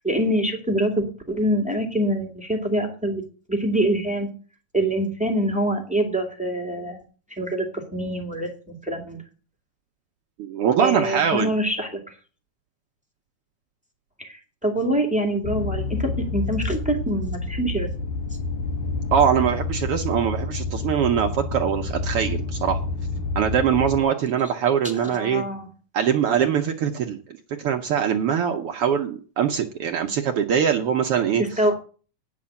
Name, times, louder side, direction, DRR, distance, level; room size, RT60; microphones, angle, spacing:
voice 1, 0.0-3.2 3.5-4.3 4.7-7.0 7.4-9.2 10.8-12.0 14.2-17.9 25.0-25.7 31.6-31.7, right 1 dB, 5° right, 2 dB, 1.6 m, -25 dB
voice 2, 10.4-11.5 19.1-22.8 23.3-25.4 25.9-27.2 27.6-31.6, right 8 dB, 70° right, 4 dB, 1.4 m, -22 dB
sound 1, 15.4-24.0, left 3 dB, 80° left, 2.5 m, -28 dB
9.5 x 6.1 x 8.6 m, 0.39 s
omnidirectional pair, 3.5 m